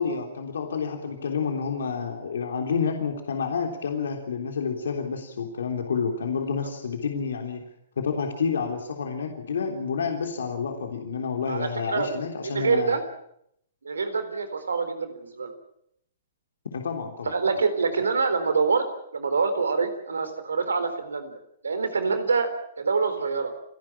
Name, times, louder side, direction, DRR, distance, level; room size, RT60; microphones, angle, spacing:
voice 1, 0.0-7.6 8.0-13.0 16.7-17.3, left 5 dB, 75° left, 4 dB, 3.4 m, -29 dB
voice 2, 11.5-12.2 12.4-13.0 13.8-15.5 17.3-18.9 19.1-21.4 21.6-22.5 22.8-23.5, right 4 dB, 85° right, 10 dB, 3.9 m, -25 dB
29.5 x 11.5 x 8.8 m, 0.73 s
hypercardioid pair, 125°, 0 cm